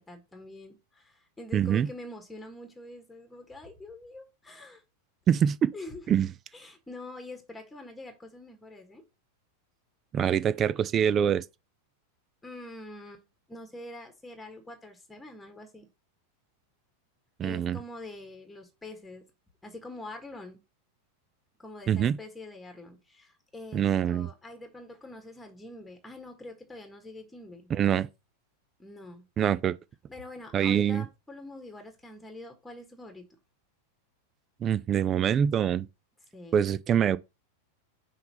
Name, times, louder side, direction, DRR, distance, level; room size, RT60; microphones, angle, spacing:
voice 1, 0.0-4.8 5.7-6.2 6.5-9.0 12.4-15.9 17.4-19.2 19.6-20.6 21.6-27.7 28.8-29.2 30.1-33.2 36.3-36.6, left 2 dB, 5° left, 1.5 m, -45 dB
voice 2, 1.5-1.9 5.3-5.7 6.1-6.3 10.1-11.4 17.4-17.8 21.9-22.2 23.7-24.3 27.7-28.1 29.4-29.7 30.5-31.0 34.6-35.9 36.5-37.2, right 9 dB, 25° right, 0.3 m, -24 dB
5.8 x 3.4 x 5.4 m
figure-of-eight pair, 90°, 0 cm